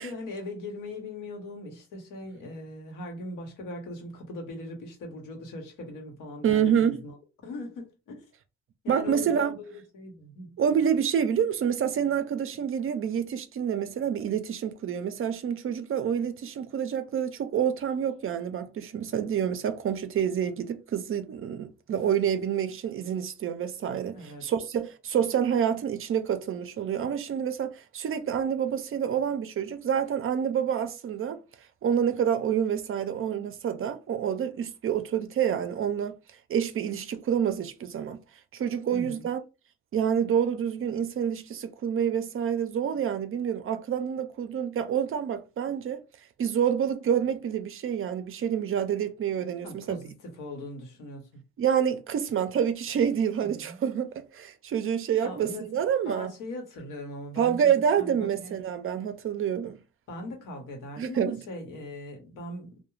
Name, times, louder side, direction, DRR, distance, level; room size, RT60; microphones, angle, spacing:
voice 1, 0.0-7.2 7.4-8.2 8.8-10.6 24.1-24.5 38.9-39.3 49.6-51.4 53.4-53.8 55.2-55.7 56.1-57.6 58.0-58.6 60.1-62.7, left 2 dB, 85° left, 1.0 m, -40 dB
voice 2, 6.4-7.0 8.9-9.5 10.6-31.4 31.8-36.1 36.5-38.2 38.5-39.4 39.9-46.0 46.4-50.0 51.6-56.3 57.4-59.8 61.0-61.4, right 8 dB, 45° right, 0.4 m, -27 dB
2.3 x 2.2 x 3.0 m
cardioid pair, 90°, 30 cm